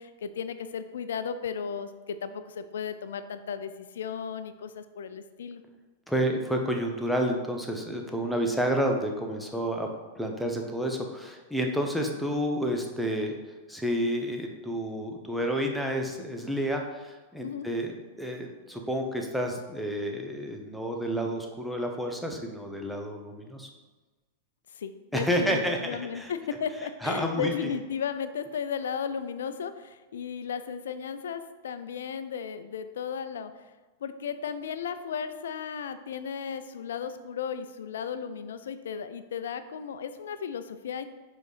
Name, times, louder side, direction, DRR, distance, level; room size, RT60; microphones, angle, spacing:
voice 1, 0.0-5.6 17.4-17.7 24.7-33.5 34.0-41.1, left 7 dB, 75° left, 11 dB, 0.4 m, -35 dB
voice 2, 6.1-9.9 10.1-13.3 13.7-23.7 25.1-26.3 27.0-27.5, equal, ahead, 1 dB, 0.9 m, -30 dB
5.0 x 4.0 x 4.9 m, 1.3 s
hypercardioid pair, 105°, 0 cm